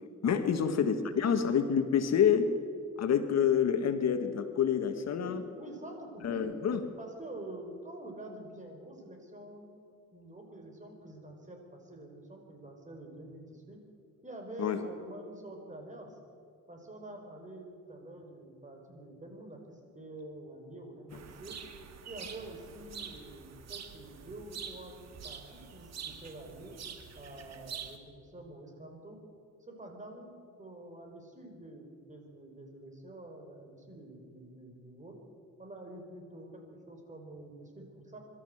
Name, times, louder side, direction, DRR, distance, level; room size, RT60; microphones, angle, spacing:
voice 1, 0.2-2.5 3.0-5.4 6.2-6.8 14.6-14.8, left 8 dB, 60° left, 7 dB, 1.7 m, -27 dB
voice 2, 5.2-6.5 7.0-9.7 10.1-13.8 14.2-16.2 16.7-21.6 22.1-26.7 27.1-29.2 29.6-35.2 35.6-38.2, right 1 dB, 25° right, 3 dB, 5.1 m, -47 dB
sound 1, 21.1-28.0, right 7 dB, 60° right, 2.1 m, -46 dB
25.0 x 13.0 x 8.0 m, 2.4 s
cardioid pair, 90°, 30 cm